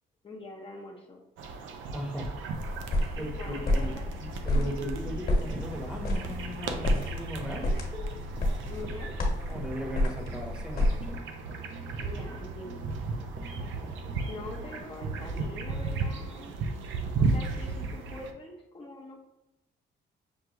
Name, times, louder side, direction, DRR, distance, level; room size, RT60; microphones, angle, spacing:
voice 1, 0.2-1.2 3.2-4.1 8.6-9.1 12.0-12.9 14.3-16.5 17.2-19.2, left 2 dB, 25° left, -1 dB, 0.6 m, -43 dB
sound 1, 1.4-18.3, right 4 dB, 80° right, 0.5 m, -36 dB
voice 2, 1.9-2.3 3.2-8.1 9.2-11.2, equal, 5° right, 0 dB, 0.9 m, -38 dB
sound 2, 2.5-11.2, left 1 dB, 50° left, 1.2 m, -30 dB
sound 3, 3.8-14.8, right 2 dB, 40° right, 0.8 m, -44 dB
6.2 x 2.2 x 2.8 m, 0.97 s
cardioid pair, 90°, 20 cm